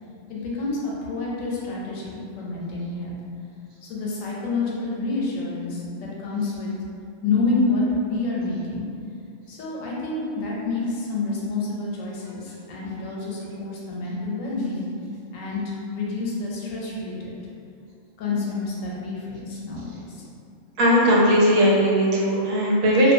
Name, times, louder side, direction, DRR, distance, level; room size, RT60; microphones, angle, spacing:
voice 1, 0.3-3.2 3.8-5.8 6.2-6.7 7.2-8.9 9.5-14.8 15.3-15.6 15.9-17.3 18.2-20.2, left 3 dB, 85° left, -5 dB, 1.0 m, -28 dB
voice 2, 20.8-23.1, equal, 80° right, -4 dB, 1.0 m, -18 dB
2.4 x 2.2 x 2.6 m, 2.5 s
omnidirectional pair, 1.4 m